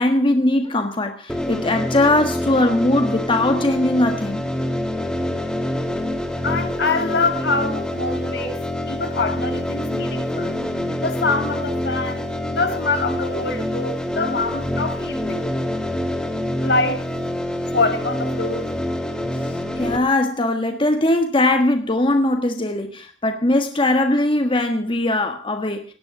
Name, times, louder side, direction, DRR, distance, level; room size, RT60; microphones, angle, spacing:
voice 1, 0.0-4.4 19.8-25.8, left 1 dB, 30° left, 1.5 m, -20 dB
sound 1, 1.3-20.0, left 1 dB, 5° left, 2.3 m, -26 dB
voice 2, 6.4-8.6 8.9-10.6 11.0-15.5 16.6-17.0 17.7-18.7, left 3 dB, 65° left, 2.4 m, -25 dB
18.0 x 10.5 x 6.0 m
head